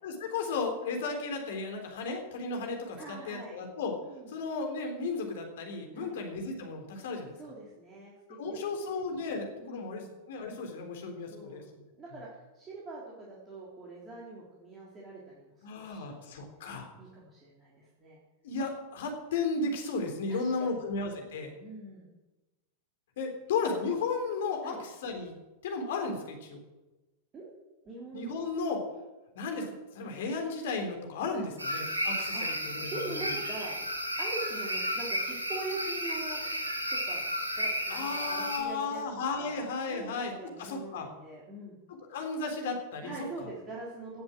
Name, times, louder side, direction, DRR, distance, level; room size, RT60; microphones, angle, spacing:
voice 1, 0.0-3.9 4.3-7.3 8.4-10.0 10.3-11.6 15.6-16.9 18.4-21.5 23.2-25.3 25.6-26.6 28.1-28.8 29.4-33.2 37.9-40.3 40.6-41.1 42.1-43.5, left 4 dB, 55° left, 3 dB, 3.7 m, -34 dB
voice 2, 3.0-3.6 4.0-4.3 5.9-6.2 7.3-8.1 8.5-8.6 8.9-9.0 9.6-10.1 11.3-11.6 11.9-15.5 15.8-16.4 17.0-18.2 20.3-20.8 21.5-22.1 24.6-24.8 27.3-27.4 27.9-28.4 31.3-31.5 32.3-32.5 32.9-33.9 34.2-36.4 37.0-37.2 37.5-39.0 39.4-41.8 43.0-44.2, right 2 dB, 20° right, -5 dB, 3.6 m, -43 dB
sound 1, 31.6-38.6, equal, 85° right, 2.7 m, -33 dB
17.5 x 8.1 x 7.6 m, 1.1 s
figure-of-eight pair, 90°, 0 cm